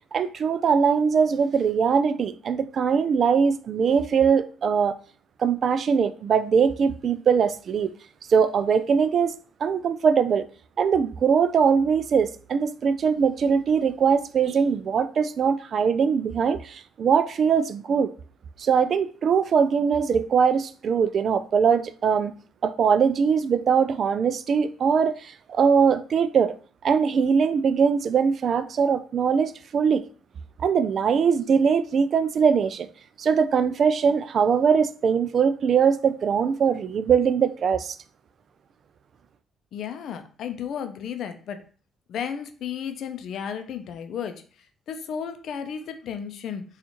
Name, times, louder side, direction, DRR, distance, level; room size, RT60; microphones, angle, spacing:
voice 1, 0.1-5.0 5.4-7.9 8.3-9.3 9.6-10.4 10.8-18.1 18.6-22.3 22.6-26.6 26.8-30.0 30.6-32.9 33.2-38.0, right 6 dB, 55° right, 0.3 m, -21 dB
voice 2, 39.7-41.6 42.1-44.4 44.9-46.6, left 8 dB, 70° left, 0.5 m, -33 dB
4.1 x 2.4 x 2.9 m
supercardioid pair, 70°, 0 cm